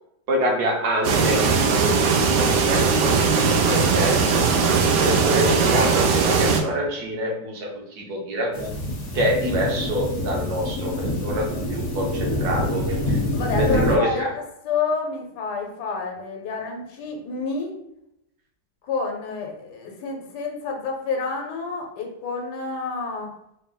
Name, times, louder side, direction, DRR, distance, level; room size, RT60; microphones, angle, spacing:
voice 1, 0.3-3.1 3.7-8.7 9.1-13.2 13.6-14.3, equal, 70° right, -1 dB, 1.4 m, -26 dB
sound 1, 1.0-6.6, right 5 dB, 90° right, 0.6 m, -19 dB
sound 2, 8.5-14.0, left 1 dB, 40° left, 0.8 m, -26 dB
voice 2, 13.3-17.7 18.8-23.3, left 4 dB, 75° left, 2 dB, 1.3 m, -29 dB
4.1 x 2.0 x 3.7 m, 0.80 s
omnidirectional pair, 1.8 m